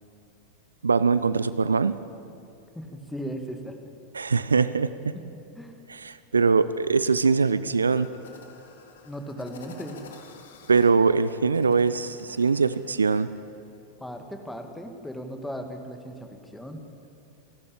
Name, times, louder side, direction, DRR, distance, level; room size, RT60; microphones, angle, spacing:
voice 1, 0.8-2.0 4.1-5.2 5.9-8.1 10.7-13.3, right 4 dB, 75° right, 15 dB, 0.5 m, -22 dB
voice 2, 2.8-3.8 5.1-5.2 5.6-5.8 9.0-10.1 14.0-16.8, equal, 5° left, 6 dB, 2.0 m, -37 dB
sound 1, 7.8-13.4, left 5 dB, 60° left, 2.1 m, -50 dB
29.5 x 12.0 x 8.6 m, 2.6 s
figure-of-eight pair, 90°, 0 cm